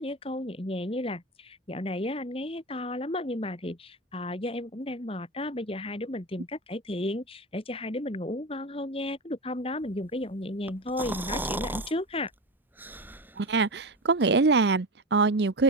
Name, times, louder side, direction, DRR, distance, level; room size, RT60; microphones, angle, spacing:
voice 1, 0.0-12.3, left 1 dB, 30° left, 1.8 m, -33 dB
sound 1, 10.7-11.9 12.3-12.4 12.8-13.4, right 1 dB, 10° right, 7.9 m, -34 dB
voice 2, 13.4-15.6, right 4 dB, 60° right, 0.7 m, -23 dB
open air
head